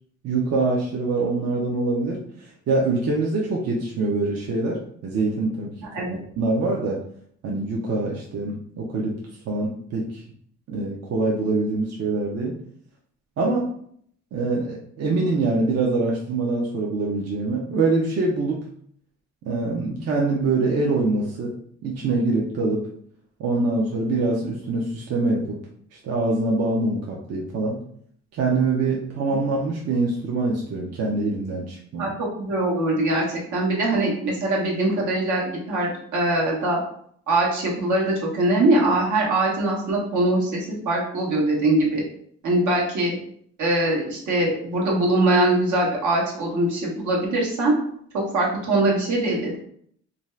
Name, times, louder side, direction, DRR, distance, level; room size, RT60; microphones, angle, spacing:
voice 1, 0.2-5.7 6.1-7.0 7.4-9.2 9.5-10.2 10.7-12.6 13.4-13.7 14.3-18.6 19.4-21.5 21.8-22.9 23.4-25.6 25.9-27.8 28.3-32.1, right 3 dB, 55° right, -2 dB, 0.6 m, -24 dB
voice 2, 5.8-6.2 32.0-36.8 37.3-42.0 42.4-43.2 43.6-47.7 48.1-49.6, right 2 dB, 75° right, -3 dB, 1.1 m, -22 dB
2.6 x 2.3 x 3.2 m, 0.64 s
cardioid pair, 90°, 30 cm